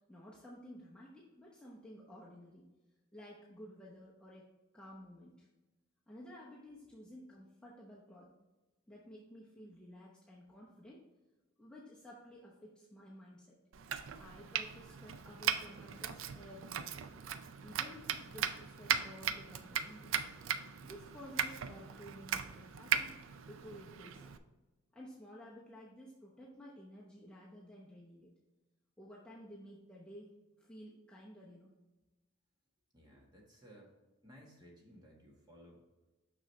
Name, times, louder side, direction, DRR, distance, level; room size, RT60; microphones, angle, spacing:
voice 1, 0.1-2.7 3.1-4.5 4.7-5.5 6.1-8.3 8.9-11.0 11.6-13.6 14.2-17.0 17.6-20.1 20.8-23.1 23.5-24.4 24.9-28.3 29.0-30.3 30.6-31.7 33.1-33.2, equal, 5° left, -6 dB, 0.8 m, -53 dB
Domestic sounds home sounds, 13.7-24.4, right 8 dB, 70° right, 0.4 m, -38 dB
voice 2, 32.9-33.9 34.2-35.8, equal, 20° right, -2 dB, 1.4 m, -58 dB
6.3 x 5.9 x 3.2 m, 1.1 s
head